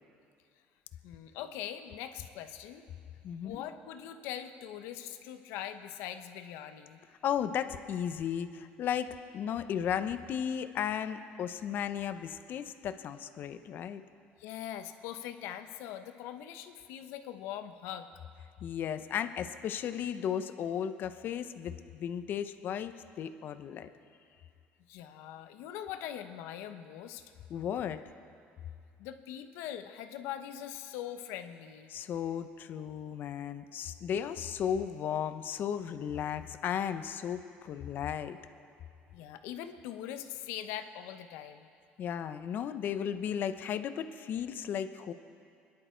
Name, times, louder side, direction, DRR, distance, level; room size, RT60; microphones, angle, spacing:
voice 1, 1.0-2.8 3.4-7.0 14.4-18.1 24.9-27.2 29.0-31.9 39.1-41.7, left 10 dB, 80° left, 9 dB, 0.9 m, -42 dB
voice 2, 3.2-3.6 7.2-14.0 18.6-23.9 27.5-28.0 31.9-38.4 42.0-45.1, left 9 dB, 50° left, 10 dB, 0.7 m, -35 dB
25.5 x 11.0 x 4.5 m, 2.3 s
cardioid pair, 115°, 4 cm